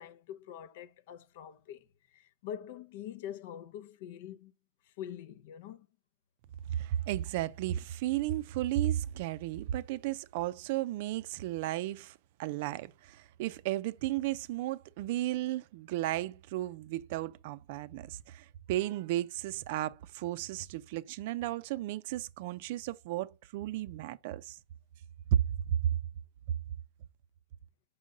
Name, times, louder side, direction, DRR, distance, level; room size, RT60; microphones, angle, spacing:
voice 1, 0.0-1.8 2.1-4.5 5.0-5.9, left 10 dB, 60° left, 0.6 m, -44 dB
voice 2, 6.7-24.6 25.3-25.4 25.7-25.9, right 13 dB, 55° right, 0.4 m, -34 dB
5.5 x 3.8 x 5.2 m
supercardioid pair, 150°, 0 cm